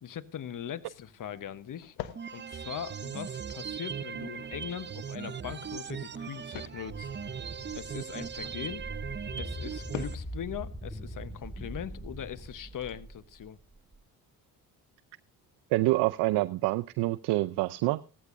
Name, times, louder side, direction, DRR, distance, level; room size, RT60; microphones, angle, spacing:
voice 1, 0.0-2.0 2.3-7.1 7.7-8.8 9.4-13.6, left 9 dB, 45° left, 14 dB, 1.0 m, -40 dB
sound 1, 0.5-12.9, left 13 dB, 85° left, 0.9 m, -49 dB
sound 2, 2.2-10.2, right 7 dB, 25° right, 0.6 m, -39 dB
sound 3, 6.9-14.0, equal, 5° right, 2.3 m, -42 dB
voice 2, 15.7-18.0, right 19 dB, 70° right, 13 dB, 0.6 m, -27 dB
17.0 x 15.0 x 2.6 m, 0.35 s
hypercardioid pair, 55°, 43 cm